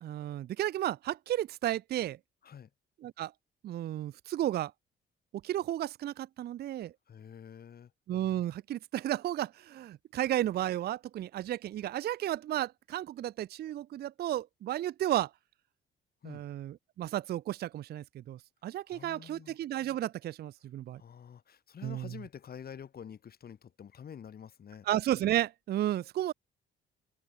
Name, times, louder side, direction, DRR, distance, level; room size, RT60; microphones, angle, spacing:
voice 1, 0.0-2.2 3.0-3.3 3.6-4.7 5.4-6.9 8.1-15.3 16.3-21.0 21.8-22.1 24.9-26.3, right 13 dB, 55° right, 0.4 m, -33 dB
voice 2, 7.1-7.9 16.2-16.4 18.9-19.6 20.9-24.9, left 8 dB, 50° left, 2.0 m, -48 dB
open air
cardioid pair, 90°, 20 cm